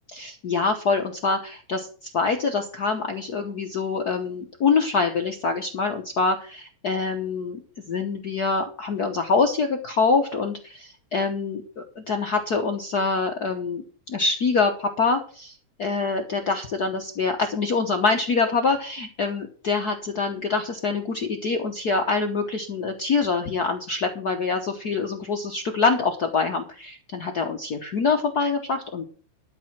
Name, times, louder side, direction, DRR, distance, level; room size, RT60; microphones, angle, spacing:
voice 1, 0.1-7.6 7.9-29.0, left 4 dB, 85° left, 4 dB, 0.8 m, -25 dB
12.5 x 5.5 x 7.4 m, 0.41 s
omnidirectional pair, 3.4 m